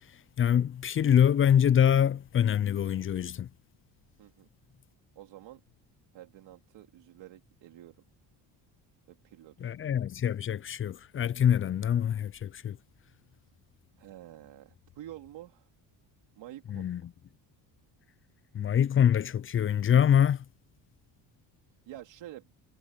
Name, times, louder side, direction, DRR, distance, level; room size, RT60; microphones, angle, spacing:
voice 1, 0.4-3.5 9.6-12.8 16.7-17.0 18.5-20.4, left 9 dB, 30° left, 0.4 m, -25 dB
voice 2, 5.1-5.6 6.1-8.0 9.1-9.8 14.0-15.7 16.3-17.0 21.9-22.5, right 13 dB, 70° right, 3.0 m, -48 dB
cardioid pair, 105°, 45 cm